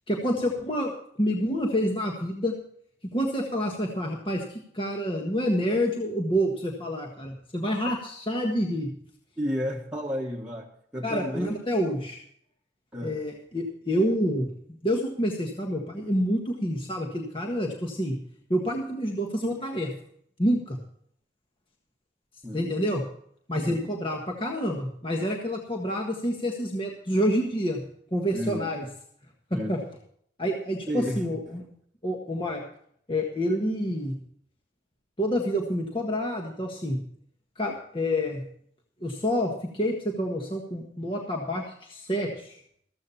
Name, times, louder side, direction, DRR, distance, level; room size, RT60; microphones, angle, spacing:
voice 1, 0.1-0.9 1.2-2.6 3.1-8.9 11.0-12.2 13.0-14.5 14.8-18.1 18.5-19.9 20.4-20.8 22.5-23.0 23.5-27.8 28.1-28.9 29.5-29.8 30.4-31.6 32.0-32.6 33.1-34.1 35.2-37.0 37.6-38.4 39.0-42.6, equal, 30° left, 1 dB, 1.6 m, -28 dB
voice 2, 9.4-11.6 12.9-13.2 22.4-22.7 23.7-23.9 28.3-28.7 29.5-29.7 30.9-31.6, equal, 5° right, -4 dB, 1.5 m, -33 dB
14.5 x 14.0 x 4.3 m, 0.65 s
head